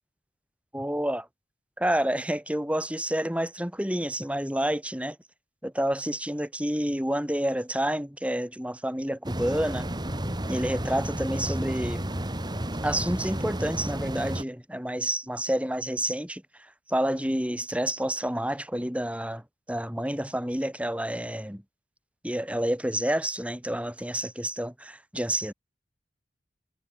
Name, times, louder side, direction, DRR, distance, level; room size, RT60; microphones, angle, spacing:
voice 1, 0.7-1.3 1.8-5.2 5.6-9.9 10.5-12.1 12.8-16.4 16.9-21.6 22.2-25.5, right 1 dB, 10° right, 4.1 m, -29 dB
sound 1, 9.2-14.4, right 1 dB, 25° right, 3.3 m, -32 dB
head